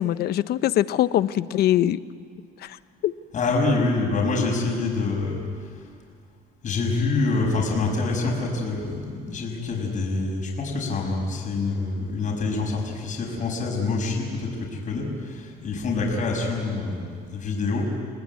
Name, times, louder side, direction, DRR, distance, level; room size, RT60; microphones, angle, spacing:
voice 1, 0.0-2.0 2.6-2.8 3.0-3.1, left 12 dB, 70° left, 14 dB, 0.8 m, -22 dB
voice 2, 3.3-5.9 6.6-17.8, left 3 dB, 50° left, 0 dB, 6.1 m, -26 dB
29.0 x 19.0 x 9.6 m, 2.1 s
cardioid pair, 110°, 17 cm